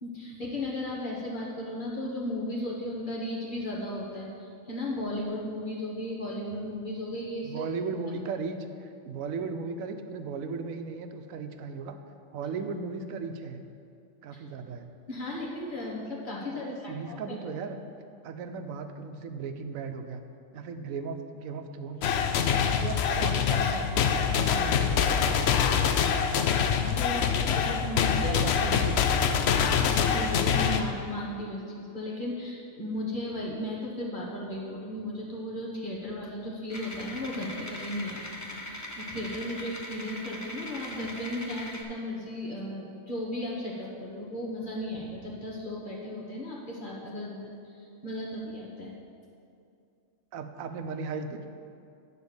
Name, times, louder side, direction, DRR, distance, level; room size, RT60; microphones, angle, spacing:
voice 1, 0.0-7.6 15.1-17.3 26.8-28.4 29.7-38.2 38.5-48.9, left 1 dB, 40° left, -4 dB, 1.5 m, -35 dB
voice 2, 7.4-12.0 12.3-13.6 14.2-14.9 16.5-17.8 18.2-20.2 20.5-22.2 22.6-25.6 28.1-29.4 50.3-51.5, right 4 dB, 90° right, 7 dB, 1.1 m, -36 dB
sound 1, 22.0-30.8, left 7 dB, 65° left, 0.7 m, -25 dB
sound 2, 36.7-41.8, left 1 dB, 20° left, 0.5 m, -40 dB
9.7 x 4.2 x 7.0 m, 2.5 s
omnidirectional pair, 1.4 m